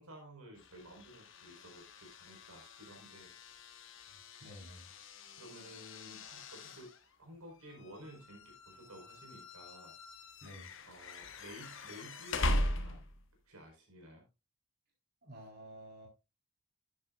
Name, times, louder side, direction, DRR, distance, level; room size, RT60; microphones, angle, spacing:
voice 1, 0.0-3.3 5.3-6.9 7.2-9.9 10.8-13.1 13.4-14.2, right 1 dB, 85° right, 1 dB, 4.8 m, -53 dB
sound 1, 0.6-13.4, left 1 dB, 60° left, 1.3 m, -41 dB
voice 2, 4.4-4.9 10.4-10.7 15.2-16.1, equal, 45° right, -2 dB, 4.0 m, -51 dB
11.5 x 10.0 x 2.5 m, 0.26 s
head